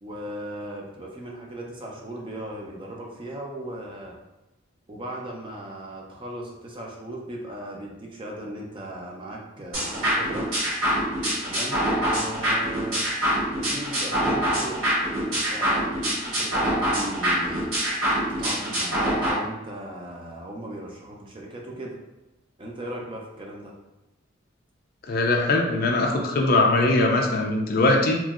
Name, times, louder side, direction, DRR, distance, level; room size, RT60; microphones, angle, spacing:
voice 1, 0.0-4.2 4.9-10.5 11.4-13.0 13.5-14.8 15.1-15.9 16.2-17.7 18.4-22.0 22.6-23.7, right 1 dB, 25° right, -2 dB, 0.4 m, -37 dB
sound 1, 9.7-19.3, equal, 80° right, 1.3 m, -25 dB
voice 2, 25.1-28.2, left 2 dB, 45° left, 2 dB, 0.4 m, -21 dB
3.0 x 2.6 x 2.4 m, 1.0 s
head